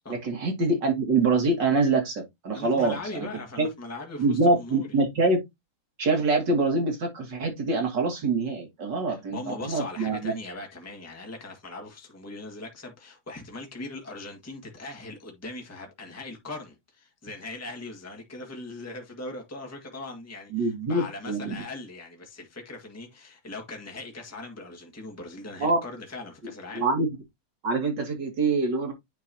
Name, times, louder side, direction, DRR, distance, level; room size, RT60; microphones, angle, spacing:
voice 1, 0.1-3.3 3.6-3.7 4.2-5.4 6.0-10.3 20.5-21.6 25.6-25.8 26.7-27.1 27.6-28.9, right 3 dB, 55° right, 2.9 m, -25 dB
voice 2, 2.5-4.9 9.1-26.8, left 2 dB, 10° left, 1.7 m, -40 dB
9.6 x 4.6 x 2.8 m
omnidirectional pair, 2.3 m